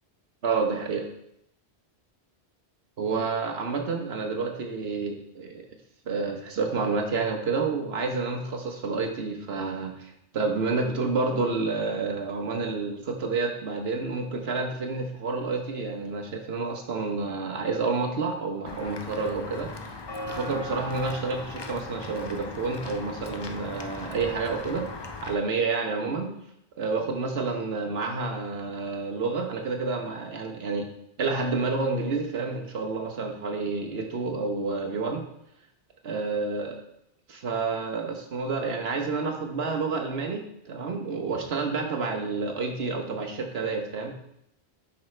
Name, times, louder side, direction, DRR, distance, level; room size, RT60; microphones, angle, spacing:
voice 1, 0.4-1.1 3.0-5.7 6.1-20.0 20.3-24.9 25.2-26.3 26.8-30.9 31.2-35.2 36.0-36.8 37.3-44.2, right 4 dB, 70° right, 3 dB, 1.3 m, -29 dB
Walk footsteps / Bell, 18.7-25.3, left 3 dB, 35° left, 0.4 m, -38 dB
8.5 x 5.9 x 3.2 m, 0.76 s
omnidirectional pair, 1.1 m